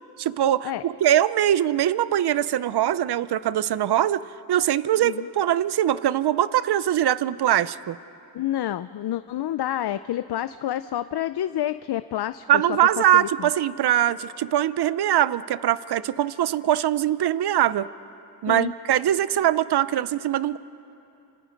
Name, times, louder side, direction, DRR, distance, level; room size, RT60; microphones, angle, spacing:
voice 1, 0.2-8.0 12.5-17.9 18.4-20.6, right 11 dB, 85° right, 17 dB, 0.6 m, -22 dB
voice 2, 8.3-13.5 18.5-18.7, left 12 dB, 80° left, 13 dB, 0.5 m, -29 dB
29.5 x 26.5 x 5.2 m, 2.8 s
wide cardioid pair, 105°, 38 cm